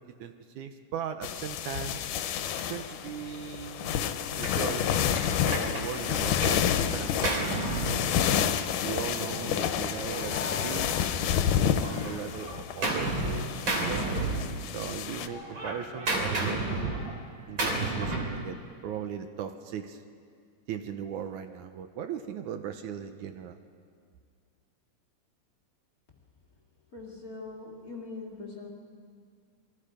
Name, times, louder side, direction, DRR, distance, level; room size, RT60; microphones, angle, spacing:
voice 1, 0.0-2.0 2.7-7.7 8.3-14.2 14.7-16.8 17.5-20.0 20.7-23.6, right 8 dB, 75° right, 8 dB, 2.2 m, -38 dB
sound 1, 1.2-15.3, left 9 dB, 85° left, 2.4 m, -29 dB
Gunshot gunfire, 4.4-4.6 5.1-6.7 6.9-8.6 9.6-11.4 11.8-13.4 13.7-14.9 15.2-18.4, right 2 dB, 40° right, 3.3 m, -32 dB
voice 2, 26.9-28.7, left 3 dB, 30° left, 0 dB, 2.3 m, -42 dB
27.0 x 22.0 x 5.1 m, 2.2 s
omnidirectional pair, 3.7 m